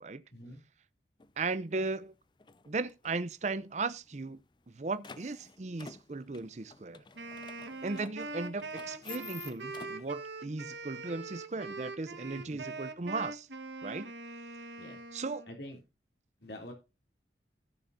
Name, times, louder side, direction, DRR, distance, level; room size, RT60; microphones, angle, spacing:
sound 1, 1.2-1.3 1.8-2.1 2.4-3.3 3.6-3.7 3.9-4.0 4.4-10.1, left 6 dB, 25° left, 0.5 m, -50 dB
voice 1, 1.4-2.1 2.7-4.4 4.7-7.0 7.8-13.5 13.8-14.1 15.1-15.4, right 3 dB, 40° right, 0.6 m, -36 dB
Wind instrument woodwind instrument, 7.2-15.6, right 3 dB, 85° right, 1.6 m, -43 dB
voice 2, 15.5-15.8 16.4-16.7, left 1 dB, 75° left, 3.1 m, -45 dB
15.0 x 6.9 x 2.7 m
head